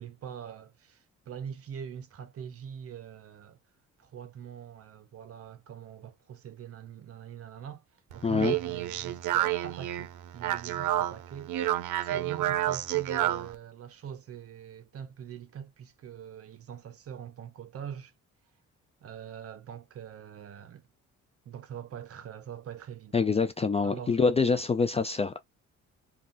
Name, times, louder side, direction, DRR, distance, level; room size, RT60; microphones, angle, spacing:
voice 1, 0.0-3.6 4.0-7.8 8.1-11.5 12.0-18.1 19.0-20.9 21.4-23.2 23.8-24.2, right 8 dB, 50° right, 0.7 m, -43 dB
Speech, 8.1-13.5, right 13 dB, 90° right, 0.5 m, -30 dB
voice 2, 8.2-8.5 23.1-25.4, left 4 dB, 20° left, 0.3 m, -25 dB
2.5 x 2.3 x 3.7 m
cardioid pair, 90°, 30 cm